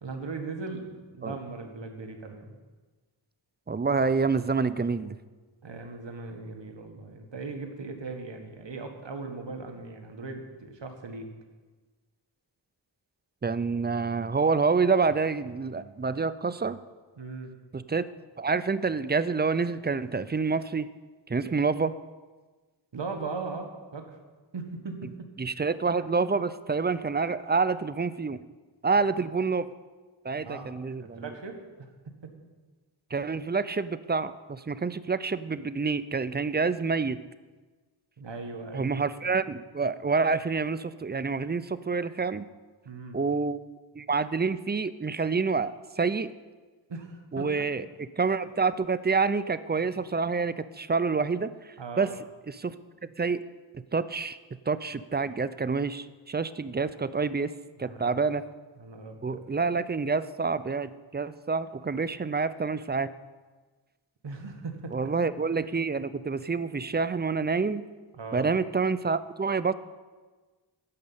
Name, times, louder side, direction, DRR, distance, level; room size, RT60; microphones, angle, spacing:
voice 1, 0.0-2.6 5.6-11.3 17.2-17.6 22.9-24.2 24.5-25.3 29.1-29.3 30.4-30.8 31.2-31.6 32.2-32.3 38.2-39.0 42.8-43.2 46.9-47.5 51.8-52.2 57.8-58.2 58.8-59.4 64.2-65.1 68.1-68.5, right 3 dB, 65° right, 5 dB, 1.7 m, -38 dB
voice 2, 3.7-5.2 13.4-16.8 17.7-18.1 18.4-20.9 21.3-21.9 25.4-28.4 28.8-29.7 30.2-31.3 33.1-37.2 38.7-42.4 43.1-43.6 44.0-45.7 46.0-46.3 47.3-47.9 48.2-51.5 52.0-52.1 52.5-52.7 53.2-53.4 53.9-54.4 54.7-57.5 57.8-58.4 59.2-63.1 64.9-67.8 68.3-69.7, right 4 dB, 20° right, 15 dB, 0.5 m, -27 dB
13.5 x 5.4 x 8.7 m, 1.3 s
cardioid pair, 50°, 46 cm